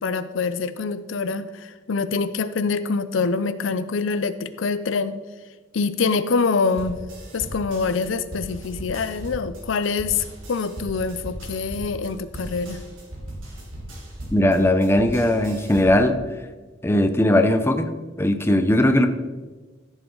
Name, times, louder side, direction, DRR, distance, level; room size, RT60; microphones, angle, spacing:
voice 1, 0.0-5.1 5.7-7.0 7.3-12.8, left 4 dB, 75° left, 12 dB, 0.5 m, -25 dB
sound 1, 6.6-16.1, right 1 dB, 80° right, 3.1 m, -37 dB
voice 2, 14.3-16.2 16.8-19.1, left 1 dB, 15° left, 7 dB, 0.7 m, -19 dB
14.0 x 7.2 x 3.9 m, 1.3 s
head